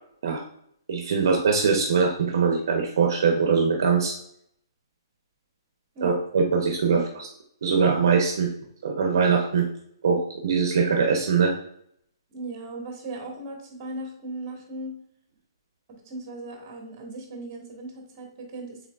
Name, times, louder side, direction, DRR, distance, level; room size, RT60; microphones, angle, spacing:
voice 1, 0.9-4.1 6.0-7.3 7.6-8.5 8.8-9.7 10.0-11.5, right 5 dB, 60° right, 1 dB, 0.8 m, -22 dB
voice 2, 12.3-14.9 16.1-18.9, right 2 dB, 30° right, 1 dB, 1.4 m, -37 dB
5.8 x 3.8 x 2.4 m, 0.70 s
hypercardioid pair, 160°, 2 cm